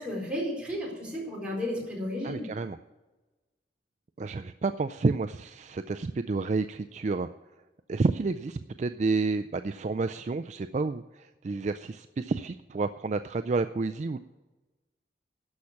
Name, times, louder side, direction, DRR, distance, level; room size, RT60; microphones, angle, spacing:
voice 1, 0.0-2.5, left 1 dB, 5° right, -4 dB, 4.2 m, -33 dB
voice 2, 2.2-2.8 4.2-7.3 7.9-14.2, right 3 dB, 40° right, 9 dB, 0.4 m, -30 dB
13.0 x 5.8 x 8.4 m, 1.1 s
head